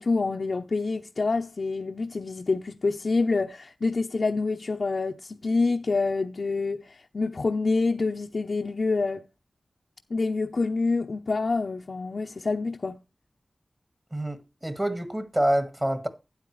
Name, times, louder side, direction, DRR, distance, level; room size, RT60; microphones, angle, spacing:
voice 1, 0.0-9.2 10.1-13.0, left 3 dB, 65° left, 0.7 m, -27 dB
voice 2, 14.1-16.1, right 1 dB, 20° right, 1.7 m, -27 dB
12.5 x 9.0 x 3.2 m
wide cardioid pair, 80°, 0 cm